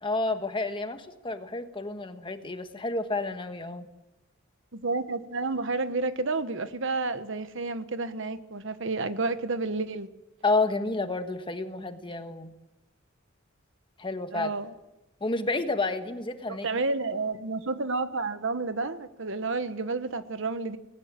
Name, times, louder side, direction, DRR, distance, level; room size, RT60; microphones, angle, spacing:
voice 1, 0.0-3.9 10.4-12.5 14.0-14.5 15.2-16.8, left 3 dB, 25° left, 1.4 m, -30 dB
voice 2, 4.7-10.1 14.3-14.7 16.6-20.8, right 3 dB, 65° right, 1.2 m, -30 dB
19.5 x 18.0 x 7.5 m
head